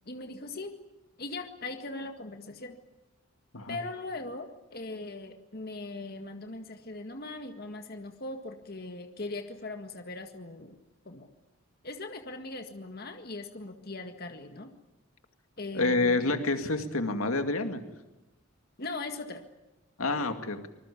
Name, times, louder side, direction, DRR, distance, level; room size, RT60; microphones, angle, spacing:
voice 1, 0.1-0.8 1.2-2.8 3.7-10.8 11.1-11.3 11.8-14.7 15.6-16.2 18.8-19.4, left 2 dB, 45° left, 6 dB, 1.9 m, -40 dB
voice 2, 15.7-17.8 20.0-20.6, left 2 dB, 90° left, 7 dB, 2.3 m, -28 dB
25.5 x 21.0 x 8.5 m, 1.0 s
head